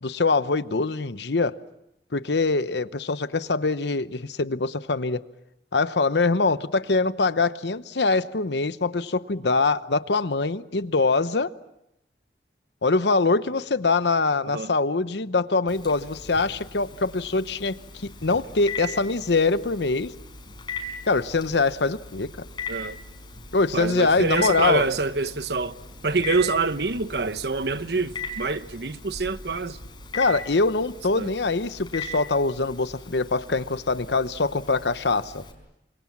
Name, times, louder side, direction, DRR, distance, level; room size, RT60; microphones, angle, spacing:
voice 1, 0.0-1.6 2.1-5.2 5.7-11.5 12.8-20.1 21.1-22.5 23.5-24.9 30.1-35.4, left 3 dB, 80° left, 0.9 m, -23 dB
Telephone, 15.7-35.5, left 2 dB, 25° left, 4.7 m, -39 dB
sound 1, 23.6-29.2, equal, ahead, 2.8 m, -52 dB
voice 2, 23.7-25.8 26.0-29.8 31.1-31.3, right 3 dB, 70° right, 1.0 m, -26 dB
28.5 x 25.5 x 7.3 m
head